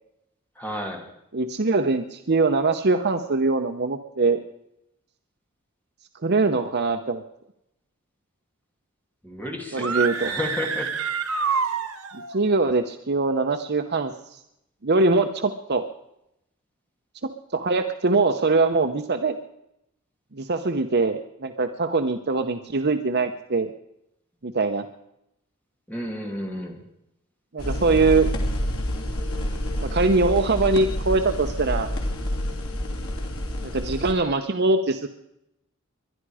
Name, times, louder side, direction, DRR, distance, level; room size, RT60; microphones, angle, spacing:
voice 1, 0.6-1.1 9.2-11.1 25.9-26.8, left 1 dB, 10° left, 1 dB, 2.7 m, -32 dB
voice 2, 1.3-4.4 6.2-7.2 9.7-10.3 12.3-14.1 14.8-15.8 17.2-19.4 20.3-23.7 24.4-24.8 27.5-28.3 29.8-31.9 33.6-35.1, right 3 dB, 50° right, 7 dB, 0.8 m, -22 dB
sound 1, 9.7-12.3, right 6 dB, 85° right, 1.5 m, -27 dB
sound 2, 27.6-34.1, equal, 85° left, 3.1 m, -28 dB
22.0 x 11.5 x 4.9 m, 0.81 s
head